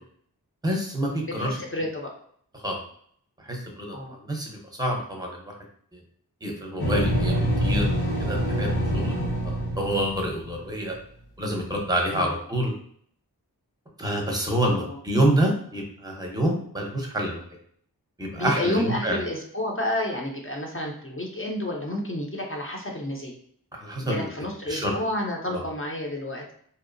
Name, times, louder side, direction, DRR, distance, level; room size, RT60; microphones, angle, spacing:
voice 1, 0.6-1.6 2.6-2.8 3.4-4.5 4.8-5.5 5.9-6.0 6.4-7.9 8.2-8.7 8.9-9.2 9.4-10.9 11.4-12.7 14.0-17.4 18.2-19.2 23.7-24.3 24.7-24.9 25.5-25.6, right 1 dB, 10° right, 0 dB, 0.7 m, -27 dB
voice 2, 1.2-2.1 3.9-4.1 12.1-12.3 14.9-15.0 18.3-23.3 24.0-26.5, left 1 dB, 35° left, 0 dB, 0.6 m, -30 dB
sound 1, 6.8-10.7, equal, 85° left, 0.9 m, -25 dB
2.7 x 2.0 x 2.5 m, 0.62 s
wide cardioid pair, 50°, 38 cm